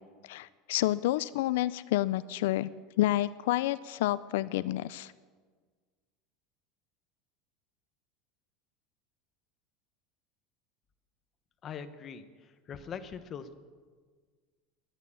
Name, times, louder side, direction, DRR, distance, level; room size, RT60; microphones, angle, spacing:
voice 1, 0.2-2.7 3.0-5.1, left 15 dB, 75° left, 16 dB, 0.4 m, -29 dB
voice 2, 11.6-13.5, left 7 dB, 25° left, 9 dB, 0.9 m, -42 dB
18.5 x 11.0 x 7.1 m, 1.5 s
supercardioid pair, 175°, 0 cm